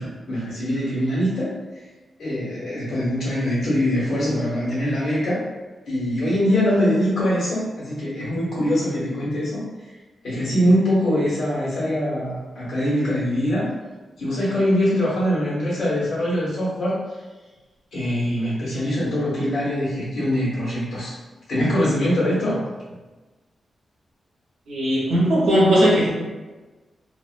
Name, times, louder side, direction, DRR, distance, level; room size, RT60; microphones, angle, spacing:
voice 1, 0.0-1.5 2.2-5.5 5.9-9.6 10.2-13.7 14.2-17.0 17.9-21.1 21.5-22.6, equal, 70° left, -8 dB, 0.9 m, -23 dB
voice 2, 24.7-26.1, equal, 80° right, -6 dB, 0.8 m, -18 dB
2.3 x 2.1 x 2.5 m, 1.2 s
wide cardioid pair, 140°, 0 cm